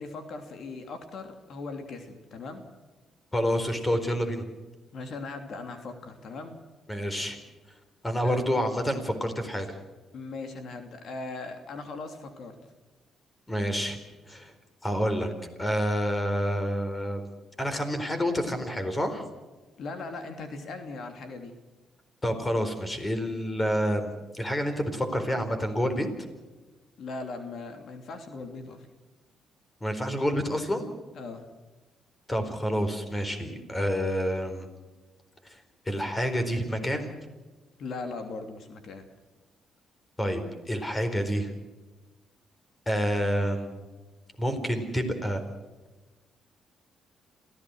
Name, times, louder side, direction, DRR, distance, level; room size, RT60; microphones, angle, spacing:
voice 1, 0.0-2.6 4.9-6.6 8.2-8.4 10.1-12.6 19.8-21.6 27.0-28.9 31.1-31.5 37.8-39.1, left 3 dB, 65° left, 6 dB, 3.0 m, -39 dB
voice 2, 3.3-4.4 6.9-7.4 8.0-9.8 13.5-14.0 14.3-14.5 14.8-15.3 15.6-17.2 17.6-19.2 22.2-26.1 29.8-30.9 32.3-34.7 35.4-37.2 40.2-41.5 42.9-43.9 44.4-45.4, equal, 15° left, 8 dB, 4.3 m, -28 dB
27.5 x 16.0 x 6.4 m, 1.2 s
cardioid pair, 90°, 0 cm